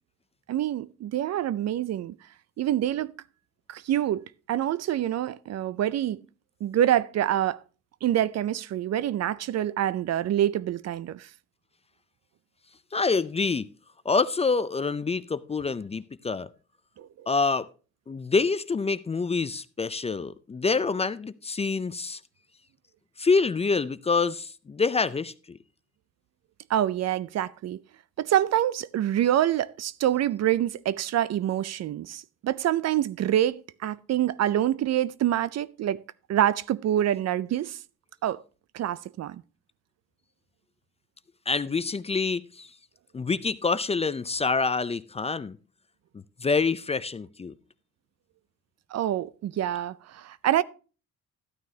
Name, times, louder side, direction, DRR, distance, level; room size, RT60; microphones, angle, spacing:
voice 1, 0.5-2.2 2.6-3.1 3.7-6.2 6.6-7.6 8.0-11.3 17.0-17.3 26.7-27.8 28.2-36.0 36.3-37.8 38.2-38.4 38.7-39.4 48.9-50.6, right 11 dB, 60° right, 0.5 m, -26 dB
voice 2, 12.9-13.7 14.1-16.5 17.3-17.7 18.1-22.2 23.2-25.6 41.5-42.7 43.1-45.6 46.1-47.5, left 4 dB, 20° left, 0.4 m, -26 dB
13.5 x 9.3 x 2.8 m
cardioid pair, 90°, 30 cm